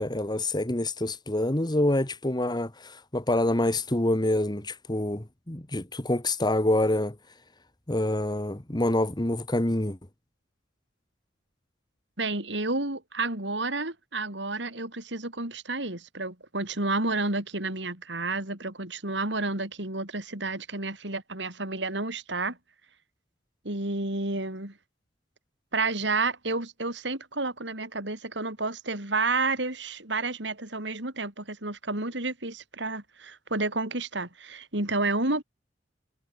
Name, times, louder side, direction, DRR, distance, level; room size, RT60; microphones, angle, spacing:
voice 1, 0.0-7.1 7.9-10.0, left 1 dB, 20° left, 1.5 m, -26 dB
voice 2, 12.2-22.6 23.6-24.7 25.7-35.4, right 3 dB, 65° right, 4.8 m, -30 dB
head